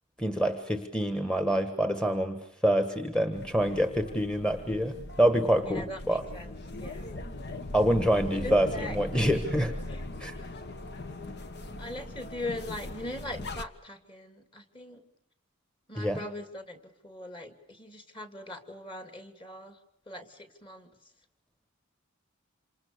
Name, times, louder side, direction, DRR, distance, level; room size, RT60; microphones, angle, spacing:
voice 1, 0.2-6.2 7.7-9.7 10.2-10.4 16.0-16.2, equal, 5° left, 7 dB, 1.4 m, -26 dB
sound 1, 3.3-13.6, left 2 dB, 55° left, 1.5 m, -40 dB
voice 2, 5.7-7.3 8.3-9.0 9.9-10.0 11.8-15.0 15.9-19.8 20.1-20.9, left 1 dB, 25° left, 9 dB, 2.6 m, -41 dB
27.5 x 27.0 x 6.8 m, 0.84 s
head